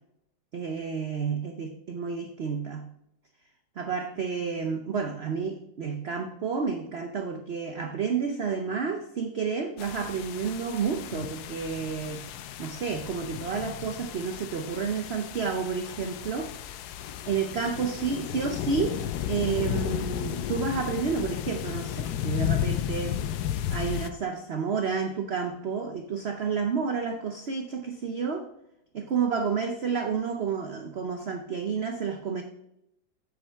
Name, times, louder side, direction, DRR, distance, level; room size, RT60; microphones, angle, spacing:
voice 1, 0.5-2.9 3.8-12.2 12.6-16.5 17.3-19.0 19.3-23.2 23.7-28.5 28.9-32.4, right 5 dB, 55° right, 5 dB, 0.7 m, -30 dB
sound 1, 9.8-24.1, left 10 dB, 70° left, 1.0 m, -33 dB
7.6 x 7.6 x 3.5 m, 0.81 s
omnidirectional pair, 1.9 m